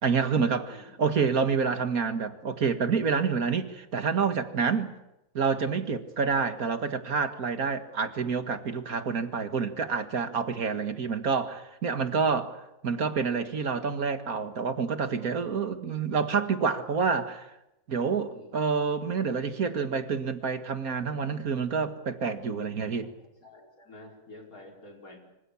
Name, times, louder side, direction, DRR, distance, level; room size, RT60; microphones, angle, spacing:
voice 1, 0.0-4.9 5.3-12.6 12.8-17.5 17.9-23.1, right 5 dB, 85° right, 8 dB, 2.2 m, -28 dB
voice 2, 0.7-1.0 6.3-6.5 18.2-18.6 23.2-25.2, left 2 dB, 80° left, 1 dB, 5.7 m, -50 dB
26.5 x 25.0 x 7.2 m, 0.89 s
omnidirectional pair, 1.5 m